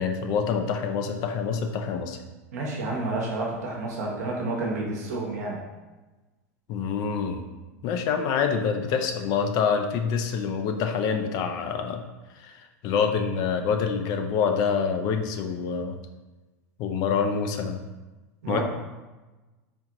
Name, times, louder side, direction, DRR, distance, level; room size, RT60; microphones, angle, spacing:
voice 1, 0.0-2.2 6.7-7.4 7.8-12.0 12.4-16.0 16.8-17.8 18.5-18.6, left 6 dB, 50° left, 6 dB, 0.4 m, -26 dB
voice 2, 2.5-5.6 18.4-18.6, right 2 dB, 80° right, -2 dB, 1.0 m, -30 dB
4.3 x 2.4 x 2.9 m, 1.2 s
hypercardioid pair, 110°, 9 cm